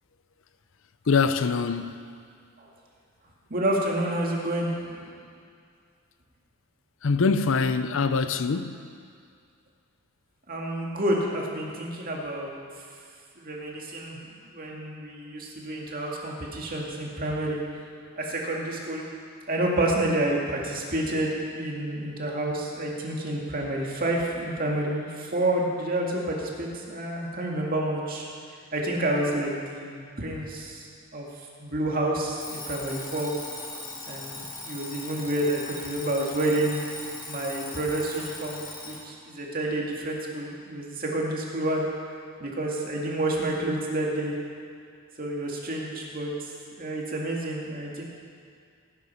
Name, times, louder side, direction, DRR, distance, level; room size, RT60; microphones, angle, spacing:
voice 1, 1.1-1.9 7.0-8.8, left 4 dB, 65° left, 0.6 m, -24 dB
voice 2, 3.5-5.1 10.5-12.6 13.4-14.3 14.5-17.6 18.2-19.1 19.5-28.2 28.7-30.9 31.1-31.3 31.6-33.3 34.1-34.4 34.6-36.8 37.3-41.9 42.4-44.4 45.2-46.3 46.8-48.0, right 1 dB, 45° right, 2.1 m, -29 dB
Alarm, 32.4-39.1, left 2 dB, 20° left, 1.7 m, -39 dB
17.0 x 9.4 x 5.6 m
head